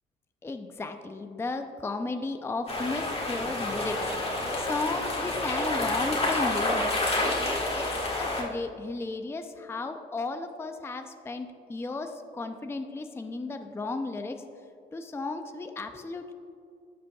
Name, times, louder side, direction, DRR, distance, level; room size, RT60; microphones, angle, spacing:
voice 1, 0.4-4.0 4.6-6.9 7.4-7.9 8.1-14.4 14.9-16.3, left 3 dB, 10° left, 7 dB, 0.4 m, -34 dB
sound 1, 2.7-8.4, left 2 dB, 30° left, 1.6 m, -29 dB
14.5 x 5.1 x 2.3 m, 2.4 s
cardioid pair, 90°, 20 cm